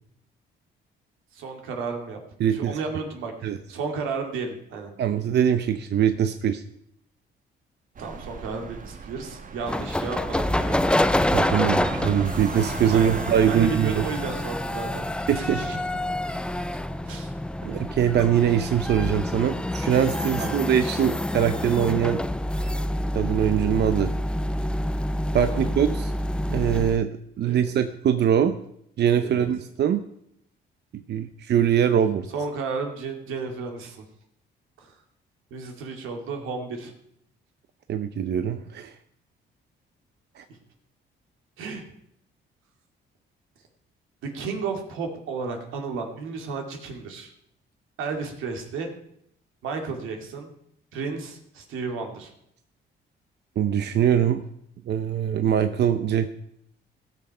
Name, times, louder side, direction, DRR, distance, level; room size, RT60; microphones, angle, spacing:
voice 1, 1.3-3.3 3.7-4.9 8.0-10.8 12.9-13.2 13.5-15.0 15.3-15.8 17.1-17.3 20.4-20.6 25.5-25.7 27.4-27.8 29.2-29.5 32.3-34.0 34.8-34.9 35.5-36.9 41.6-41.8 44.3-47.3 48.0-48.9 49.6-50.5 50.9-52.3, right 4 dB, 90° right, 4 dB, 2.3 m, -33 dB
voice 2, 2.4-2.8 3.4-3.6 5.0-6.6 11.3-14.0 15.3-15.6 17.6-22.2 23.1-24.1 25.3-26.1 26.5-27.1 27.4-28.5 29.0-30.0 31.1-32.3 37.9-38.9 40.4-40.5 53.6-54.4 54.9-56.3, right 9 dB, 60° right, 10 dB, 0.7 m, -22 dB
sound 1, 8.0-19.3, right 5 dB, 40° right, 1.2 m, -39 dB
sound 2, 9.7-27.0, left 1 dB, 5° left, 0.4 m, -27 dB
16.5 x 6.7 x 5.6 m, 0.75 s
cardioid pair, 90°, 20 cm